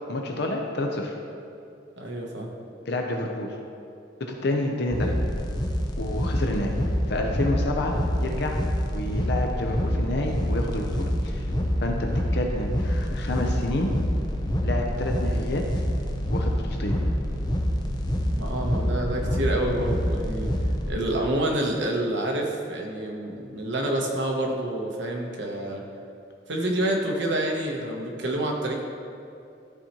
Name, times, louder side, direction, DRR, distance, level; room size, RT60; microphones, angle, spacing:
voice 1, 0.1-1.1 2.9-3.5 4.2-5.1 6.0-6.7 7.1-8.6 8.9-11.5 11.8-13.9 14.6-15.6 16.3-16.9, left 1 dB, 60° left, 2 dB, 0.6 m, -29 dB
voice 2, 2.0-2.5 18.3-20.5 20.9-25.8 26.5-28.8, right 1 dB, 70° right, 0 dB, 0.9 m, -28 dB
sound 1, 4.9-20.9, equal, 25° left, 0.6 m, -26 dB
12.5 x 4.2 x 3.0 m, 2.6 s
head